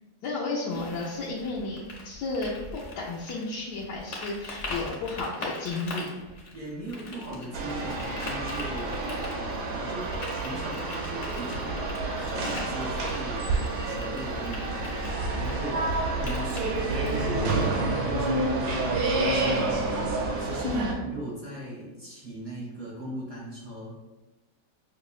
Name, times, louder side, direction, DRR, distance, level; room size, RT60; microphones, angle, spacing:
voice 1, 0.2-6.1 20.6-21.0, left 3 dB, 80° left, -6 dB, 1.2 m, -32 dB
sound 1, 0.7-17.6, left 2 dB, 55° left, 1.0 m, -42 dB
voice 2, 6.5-11.7 12.2-23.9, right 1 dB, 50° right, -5 dB, 0.6 m, -39 dB
sound 2, 7.5-20.9, right 2 dB, 75° right, 1.1 m, -29 dB
6.0 x 2.0 x 2.4 m, 1.1 s
omnidirectional pair, 1.8 m